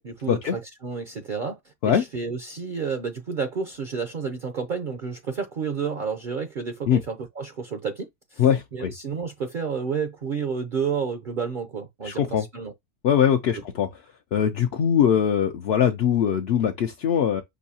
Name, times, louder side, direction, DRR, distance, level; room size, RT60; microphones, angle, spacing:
voice 1, 0.0-8.5 8.7-12.7, right 5 dB, 50° right, 0.6 m, -30 dB
voice 2, 8.4-8.9 12.0-12.4 13.0-13.9 14.3-17.4, left 8 dB, 65° left, 0.6 m, -21 dB
6.2 x 2.7 x 2.7 m
omnidirectional pair, 1.5 m